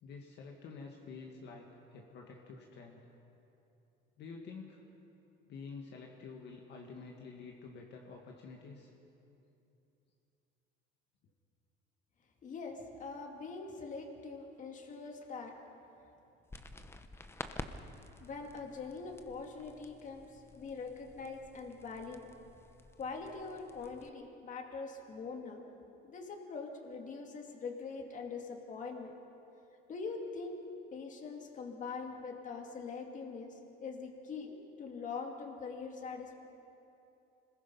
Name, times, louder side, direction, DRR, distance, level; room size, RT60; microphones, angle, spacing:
voice 1, 0.0-3.0 4.2-4.8 5.5-8.9, left 4 dB, 55° left, 1 dB, 1.9 m, -49 dB
voice 2, 12.4-15.6 18.2-22.3 23.0-25.6 26.0-29.1 29.9-30.6 30.9-36.4, left 4 dB, 35° left, 3 dB, 2.3 m, -43 dB
sound 1, 16.5-24.1, left 2 dB, 10° left, 0.8 m, -50 dB
25.5 x 20.5 x 5.5 m, 2.9 s
cardioid pair, 140°, 21 cm